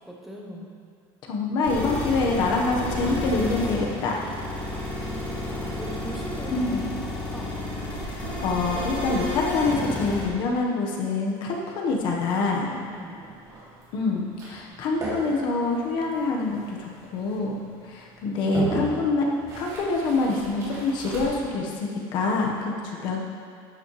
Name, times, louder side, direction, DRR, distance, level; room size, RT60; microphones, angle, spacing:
voice 1, 0.1-0.7 4.3-6.8 7.3-7.5 12.6-13.2, right 1 dB, ahead, -2 dB, 1.0 m, -41 dB
voice 2, 1.3-4.2 6.5-6.8 8.0-12.7 13.9-19.3 19.6-23.2, left 3 dB, 50° left, -1 dB, 1.4 m, -26 dB
sound 1, 1.6-10.3, left 2 dB, 15° left, 2.5 m, -31 dB
sound 2, 11.7-21.5, right 2 dB, 35° right, 2.7 m, -38 dB
12.5 x 8.5 x 3.3 m, 2.2 s
cardioid pair, 175°, 10 cm